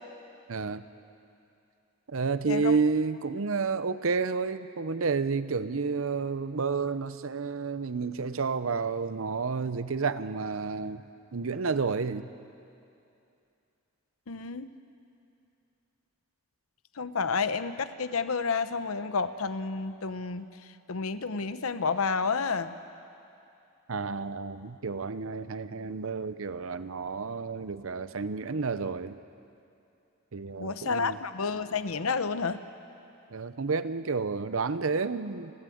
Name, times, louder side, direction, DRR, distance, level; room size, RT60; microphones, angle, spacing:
voice 1, 0.5-0.8 2.1-11.0 11.3-12.3 23.9-29.2 30.3-31.2 33.3-35.5, right 4 dB, 70° right, 13 dB, 0.7 m, -30 dB
voice 2, 14.3-14.7 17.0-20.5 20.9-22.8 30.6-32.6, left 5 dB, 85° left, 12 dB, 0.8 m, -30 dB
30.0 x 13.0 x 7.9 m, 2.6 s
head